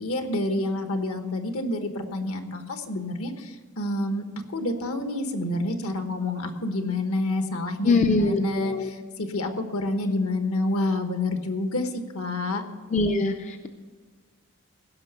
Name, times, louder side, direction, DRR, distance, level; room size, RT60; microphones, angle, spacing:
voice 1, 0.0-12.6, left 2 dB, 70° left, 7 dB, 1.2 m, -28 dB
voice 2, 7.8-8.9 12.9-13.7, left 3 dB, 35° left, 6 dB, 0.5 m, -23 dB
16.0 x 5.9 x 6.7 m, 1.4 s
head